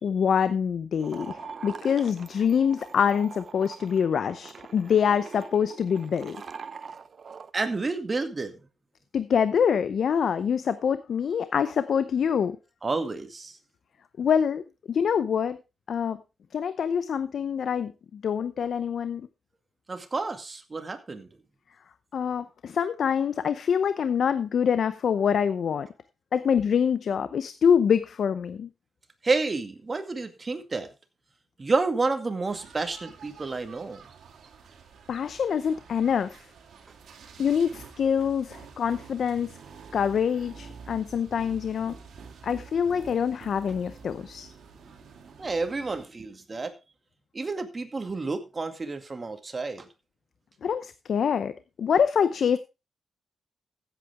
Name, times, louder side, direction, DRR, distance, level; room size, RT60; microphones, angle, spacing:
voice 1, 0.0-6.4 9.1-12.6 14.2-15.6 15.9-16.2 16.5-19.3 22.1-25.9 26.3-28.7 35.1-36.4 37.4-39.6 39.9-42.0 42.4-44.5 50.6-51.5 51.8-52.6, left 7 dB, 70° left, 13 dB, 0.7 m, -25 dB
sound 1, 1.0-7.5, right 5 dB, 55° right, 0.7 m, -43 dB
voice 2, 7.5-8.6 12.8-13.6 19.9-21.3 29.2-30.9 31.6-34.0 45.4-46.7 47.3-49.9, right 3 dB, 35° right, 7 dB, 2.1 m, -30 dB
sound 2, 32.4-46.1, right 5 dB, 80° right, 2.5 m, -48 dB
15.0 x 8.3 x 3.5 m, 0.28 s
cardioid pair, 85°, 0 cm